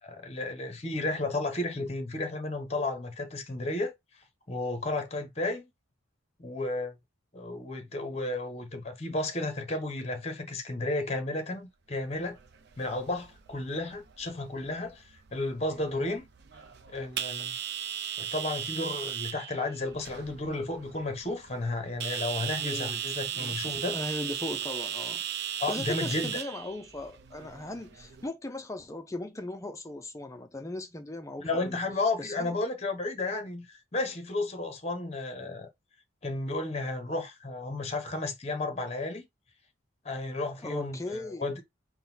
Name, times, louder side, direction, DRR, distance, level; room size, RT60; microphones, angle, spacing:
voice 1, 0.0-3.9 4.5-5.7 6.4-6.9 7.3-12.4 12.8-15.0 15.3-16.3 16.9-17.5 18.2-24.0 25.6-26.3 31.4-35.7 36.2-39.3 40.0-41.6, left 2 dB, 30° left, 0.9 m, -33 dB
sound 1, 12.1-28.3, right 9 dB, 50° right, 0.5 m, -37 dB
voice 2, 22.5-23.0 23.3-23.6 23.9-25.2 25.7-31.8 32.2-32.5 40.6-41.5, left 2 dB, 15° left, 0.4 m, -38 dB
3.8 x 2.2 x 4.1 m
head